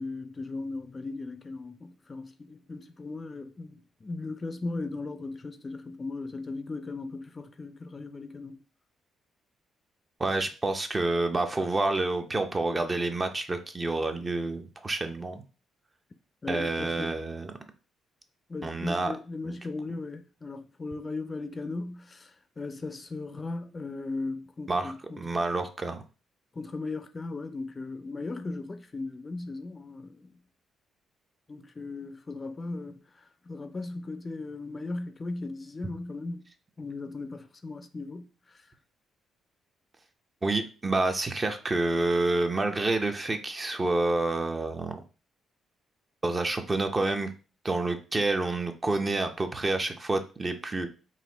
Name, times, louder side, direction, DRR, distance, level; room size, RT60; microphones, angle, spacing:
voice 1, 0.0-8.6 16.4-17.1 18.5-25.2 26.5-30.3 31.5-36.5 36.8-38.7, left 3 dB, 30° left, 0.4 m, -37 dB
voice 2, 10.2-15.4 16.5-17.5 18.6-19.1 19.4-19.6 24.7-26.0 40.4-45.0 46.2-47.3 47.6-50.9, right 2 dB, 25° right, 0.6 m, -28 dB
4.0 x 2.5 x 3.9 m
cardioid pair, 90°, 0 cm